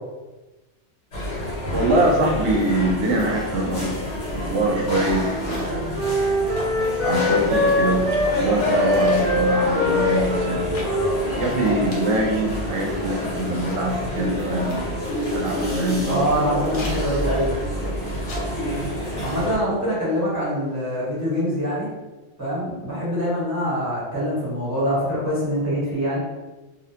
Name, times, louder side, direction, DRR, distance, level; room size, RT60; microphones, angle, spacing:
sound 1, 1.1-19.6, left 1 dB, 80° left, 1.2 m, -27 dB
voice 1, 1.7-4.0 4.3-6.1 7.0-10.7 11.4-16.7 19.7-19.8, right 2 dB, 75° right, 0 dB, 0.8 m, -24 dB
Wind instrument woodwind instrument, 4.3-8.3 8.7-13.1, left 1 dB, 55° right, 0.3 m, -24 dB
sound 2, 4.8-4.9 5.1-5.9 6.3-6.4 6.6-7.3 7.7-8.2 8.6-9.3 10.2-10.4 10.7-10.9 11.3-11.4 11.6-12.3 12.8-12.9 13.1-13.9 14.7-15.4 15.8-15.9 16.2-16.4 16.7-17.0 17.8-18.5 18.8-19.0, left 2 dB, 65° left, 0.8 m, -36 dB
voice 2, 16.1-17.5 19.2-21.9 22.4-26.2, equal, 15° right, -9 dB, 1.0 m, -24 dB
2.4 x 2.1 x 2.8 m, 1.1 s
omnidirectional pair, 1.2 m